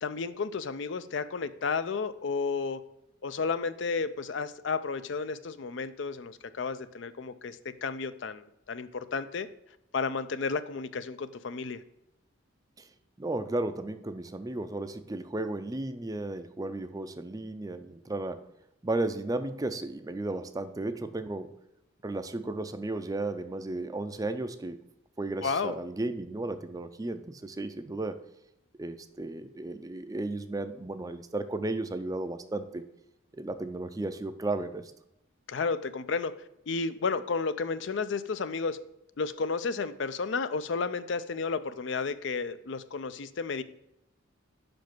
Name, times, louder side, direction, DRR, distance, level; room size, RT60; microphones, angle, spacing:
voice 1, 0.0-2.8 3.2-9.5 9.9-11.8 25.4-25.7 35.5-36.3 36.7-38.8 39.2-43.6, left 4 dB, 60° left, 13 dB, 0.5 m, -32 dB
voice 2, 13.2-18.4 18.8-21.5 22.0-24.8 25.2-28.2 28.8-32.8 33.3-34.9, right 2 dB, 20° right, 10 dB, 0.4 m, -34 dB
5.7 x 5.2 x 5.9 m, 0.85 s
head